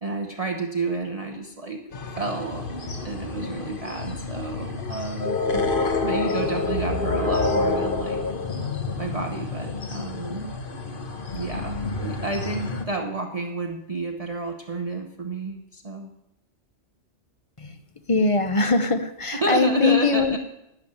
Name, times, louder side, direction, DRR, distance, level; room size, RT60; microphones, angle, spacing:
voice 1, 0.0-2.7 3.0-5.6 6.0-8.2 9.0-10.5 11.3-16.1 19.4-20.4, right 3 dB, 35° right, 3 dB, 0.9 m, -30 dB
sound 1, 1.9-12.8, left 3 dB, 50° left, 1.4 m, -28 dB
voice 2, 18.1-20.4, left 3 dB, 30° left, 9 dB, 0.8 m, -22 dB
12.0 x 7.2 x 9.8 m, 0.87 s
omnidirectional pair, 1.2 m